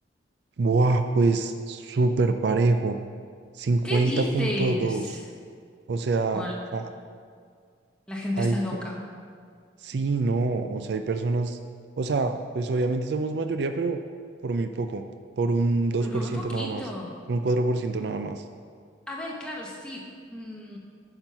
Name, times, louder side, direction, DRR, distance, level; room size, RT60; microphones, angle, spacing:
voice 1, 0.6-3.0 3.6-5.0 5.9-6.9 8.4-8.6 9.8-11.6 12.0-14.0 14.4-15.0 15.4-16.8 17.3-18.4, right 3 dB, 60° right, 8 dB, 0.4 m, -25 dB
voice 2, 3.8-5.3 6.3-6.6 8.1-9.0 16.0-17.1 19.1-20.8, left 1 dB, 5° left, -3 dB, 1.1 m, -33 dB
8.9 x 5.8 x 5.4 m, 2.1 s
head